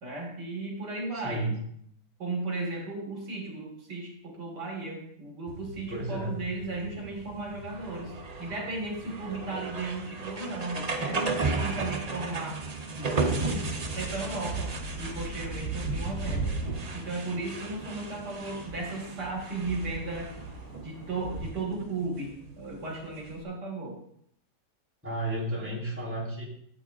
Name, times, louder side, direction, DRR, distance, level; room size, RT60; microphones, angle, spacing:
voice 1, 0.0-1.4 2.2-12.6 12.9-13.7 13.9-14.7 15.0-16.5 16.9-20.3 20.8-24.0, right 2 dB, 70° right, -1 dB, 2.6 m, -35 dB
voice 2, 1.1-1.6 5.9-6.4 25.0-26.4, right 1 dB, 5° right, -6 dB, 3.4 m, -32 dB
sound 1, 5.5-23.4, right 3 dB, 55° right, 0.4 m, -36 dB
sound 2, 13.3-21.5, right 3 dB, 10° left, 1.3 m, -38 dB
13.5 x 7.9 x 2.4 m, 0.68 s
omnidirectional pair, 1.9 m